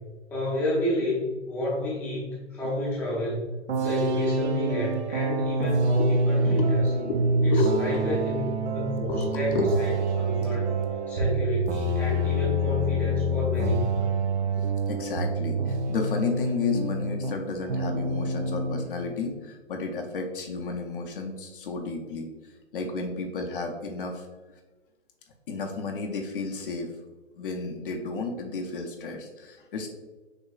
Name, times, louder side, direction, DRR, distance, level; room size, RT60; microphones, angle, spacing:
voice 1, 0.3-3.5 3.8-6.8 7.4-8.4 8.7-9.5 9.8-9.9 10.2-10.7 11.1-14.1, left 1 dB, 5° left, -6 dB, 0.5 m, -30 dB
sound 1, 3.7-17.4 17.7-18.9, right 2 dB, 70° right, 0.6 m, -27 dB
voice 2, 6.0-8.3 9.1-9.7 14.6-24.3 25.5-26.9 27.3-29.9, left 3 dB, 50° left, 3 dB, 0.6 m, -32 dB
6.4 x 2.3 x 2.3 m, 1.2 s
figure-of-eight pair, 120°, 36 cm